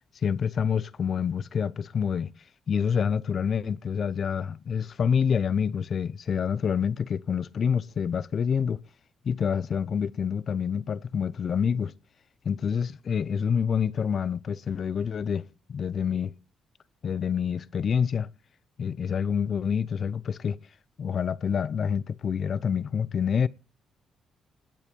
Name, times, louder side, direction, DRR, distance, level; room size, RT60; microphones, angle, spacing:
voice 1, 0.2-2.3 2.7-8.8 9.2-11.9 12.4-16.3 17.0-18.3 18.8-20.6 21.0-23.5, left 7 dB, 50° left, 0.6 m, -27 dB
19.5 x 8.3 x 5.3 m
cardioid pair, 90°, 0 cm